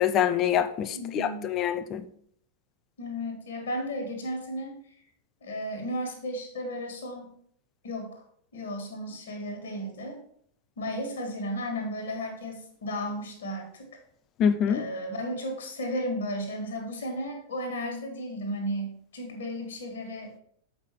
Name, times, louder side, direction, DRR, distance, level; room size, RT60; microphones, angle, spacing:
voice 1, 0.0-2.0 14.4-14.8, left 9 dB, 35° left, 0.6 m, -25 dB
voice 2, 0.9-1.5 3.0-4.8 5.4-7.3 7.8-8.2 8.5-10.2 10.8-13.9 14.7-20.3, equal, 65° left, 1.8 m, -34 dB
7.4 x 5.5 x 4.5 m
figure-of-eight pair, 90°, 0 cm